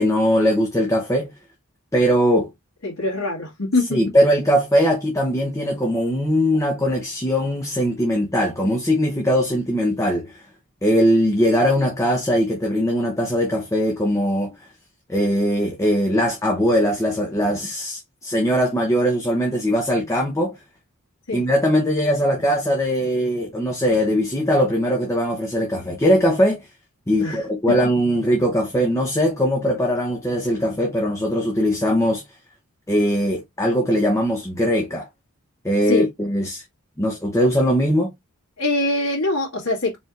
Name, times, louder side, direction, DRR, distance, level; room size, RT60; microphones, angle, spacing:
voice 1, 0.0-1.3 1.9-2.5 3.9-10.4 10.8-14.5 15.1-20.6 21.3-26.7 27.1-32.2 32.9-35.1 35.6-36.6 37.0-38.1, equal, 15° left, 0.8 m, -20 dB
voice 2, 2.8-4.0 21.3-21.4 27.2-27.4 35.9-36.1 38.6-40.0, left 2 dB, 70° left, 1.9 m, -23 dB
4.4 x 3.4 x 2.4 m
head